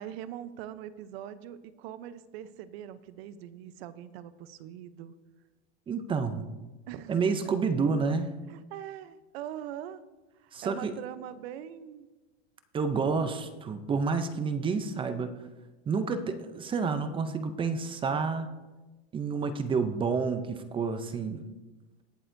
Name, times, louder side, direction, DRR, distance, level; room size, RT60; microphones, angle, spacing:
voice 1, 0.0-5.1 6.9-7.2 8.5-10.0 10.4-12.1, right 11 dB, 70° right, 14 dB, 0.8 m, -42 dB
voice 2, 5.9-6.5 7.1-8.3 10.5-10.9 12.7-15.3 15.9-18.5 19.1-21.5, right 5 dB, 15° right, 10 dB, 0.5 m, -29 dB
20.0 x 7.9 x 2.6 m, 1.2 s
supercardioid pair, 155°, 32 cm